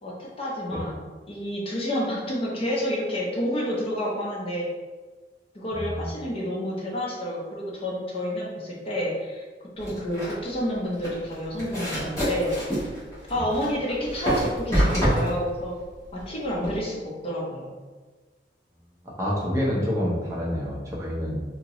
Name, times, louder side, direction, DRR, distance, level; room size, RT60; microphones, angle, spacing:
voice 1, 0.0-1.0 1.3-4.7 5.5-9.4 9.8-12.9 13.3-15.8 16.1-17.7, equal, 35° left, -4 dB, 0.6 m, -29 dB
voice 2, 5.7-6.1 19.0-21.4, equal, 15° right, -6 dB, 0.6 m, -27 dB
sound 1, 9.8-16.8, equal, 20° left, 1.3 m, -27 dB
2.8 x 2.6 x 2.9 m, 1.3 s
head